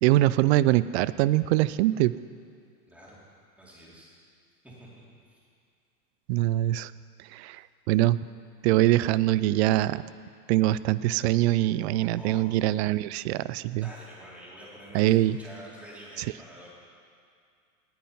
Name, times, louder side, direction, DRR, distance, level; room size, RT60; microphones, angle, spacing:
voice 1, 0.0-2.1 6.3-6.9 7.3-7.6 7.9-8.2 8.6-10.0 10.5-13.9 14.9-15.4, right 16 dB, 45° right, 17 dB, 0.5 m, -23 dB
voice 2, 2.9-3.2 3.6-4.1 4.6-4.9 5.3-5.4 12.1-12.5 13.8-16.7, equal, 5° right, -6 dB, 4.2 m, -47 dB
19.0 x 9.2 x 5.6 m, 2.2 s
hypercardioid pair, 115°, 46 cm